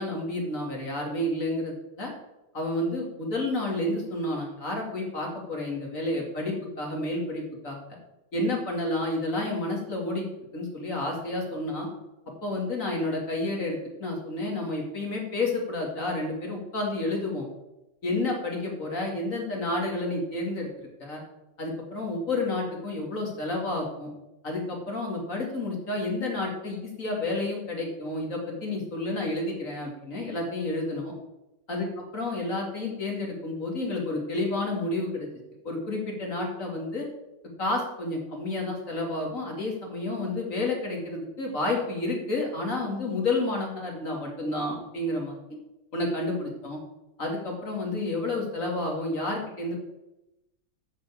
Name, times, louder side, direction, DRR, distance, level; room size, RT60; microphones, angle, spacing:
voice 1, 0.0-2.1 2.5-7.8 8.3-11.9 12.4-17.5 18.0-21.2 21.6-24.1 24.4-31.1 31.7-31.9 32.1-35.3 35.6-37.1 37.6-45.3 45.9-46.8 47.2-49.8, left 2 dB, 40° left, 0 dB, 3.0 m, -30 dB
13.0 x 4.8 x 7.5 m, 0.93 s
omnidirectional pair, 2.1 m